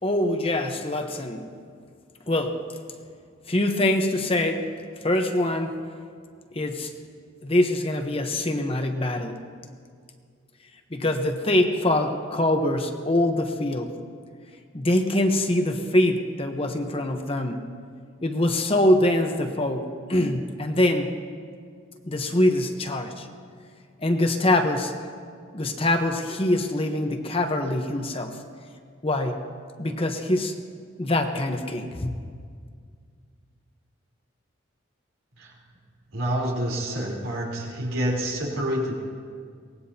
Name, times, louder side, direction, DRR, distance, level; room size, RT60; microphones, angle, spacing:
voice 1, 0.0-1.5 2.3-2.6 3.5-4.6 5.0-5.8 6.5-6.9 7.4-9.5 10.9-13.9 14.7-17.7 18.2-21.1 22.0-23.3 24.0-24.9 25.5-28.4 29.0-29.4 29.8-30.5 31.0-32.1, left 1 dB, 30° left, 5 dB, 0.9 m, -24 dB
voice 2, 36.1-38.9, equal, 85° right, -3 dB, 3.7 m, -27 dB
23.5 x 18.5 x 2.8 m, 2.1 s
head